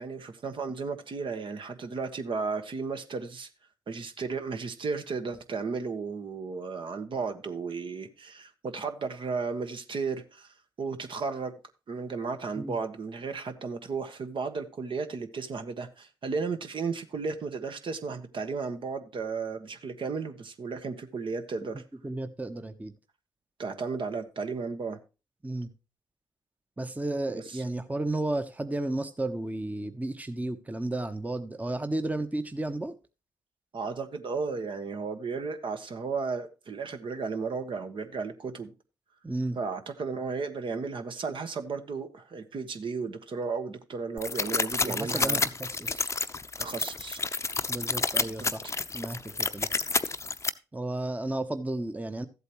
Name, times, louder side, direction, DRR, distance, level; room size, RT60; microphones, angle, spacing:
voice 1, 0.0-3.5 3.9-11.5 11.9-21.8 23.6-25.0 27.3-27.6 33.7-38.7 39.5-45.4 46.6-47.2 48.4-48.7, right 4 dB, 50° right, 1.3 m, -34 dB
voice 2, 22.0-22.9 25.4-25.7 26.8-32.9 39.2-39.6 44.8-46.1 47.7-48.6 48.9-49.7 50.7-52.3, right 2 dB, 15° right, 1.0 m, -33 dB
sound 1, 44.2-50.5, left 4 dB, 25° left, 0.7 m, -29 dB
14.0 x 8.1 x 3.0 m
hypercardioid pair, 45°, 11 cm